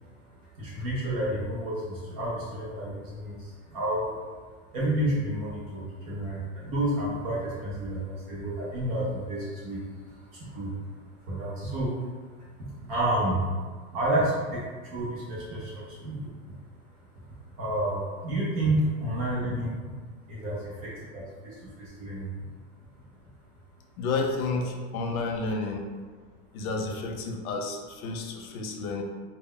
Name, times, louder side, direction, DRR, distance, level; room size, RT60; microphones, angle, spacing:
voice 1, 0.2-4.2 4.7-10.9 11.3-11.9 12.8-13.6 13.9-16.3 17.5-19.8 20.3-22.3 26.9-27.0, right 1 dB, 30° right, -6 dB, 0.4 m, -30 dB
voice 2, 24.0-25.9 26.5-29.0, left 3 dB, 80° left, 2 dB, 0.6 m, -31 dB
2.1 x 2.0 x 3.6 m, 1.5 s
supercardioid pair, 165°, 43 cm